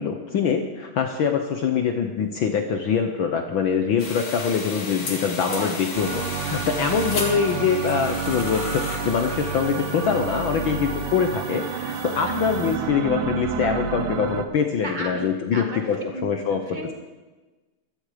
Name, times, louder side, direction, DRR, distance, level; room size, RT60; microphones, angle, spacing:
voice 1, 0.0-16.0 16.2-16.6, left 6 dB, 85° left, 6 dB, 1.1 m, -24 dB
sound 1, 4.0-12.8, left 3 dB, 35° left, 2.6 m, -35 dB
sound 2, 5.9-14.4, right 7 dB, 70° right, 1.2 m, -30 dB
voice 2, 14.8-16.9, right 2 dB, 20° right, 2 dB, 1.5 m, -34 dB
15.0 x 13.0 x 5.0 m, 1.2 s
omnidirectional pair, 3.4 m